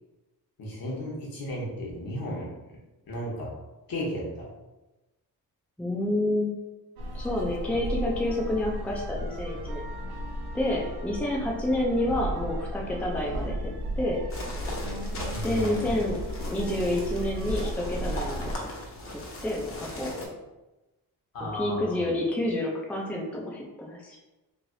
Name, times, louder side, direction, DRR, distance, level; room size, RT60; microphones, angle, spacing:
voice 1, 0.6-2.5 3.1-3.5 3.9-4.4 15.3-15.9 21.3-22.0, left 1 dB, 60° left, -3 dB, 1.1 m, -34 dB
voice 2, 5.8-6.5 7.1-9.8 10.5-14.2 15.4-16.2 16.5-18.6 19.4-20.1 21.4-24.2, left 1 dB, 5° left, -2 dB, 0.5 m, -29 dB
sound 1, 7.0-18.5, equal, 70° right, 0.6 m, -34 dB
sound 2, 14.3-20.3, left 1 dB, 35° left, 0.8 m, -38 dB
3.3 x 2.6 x 2.6 m, 1.1 s
cardioid pair, 90°, 38 cm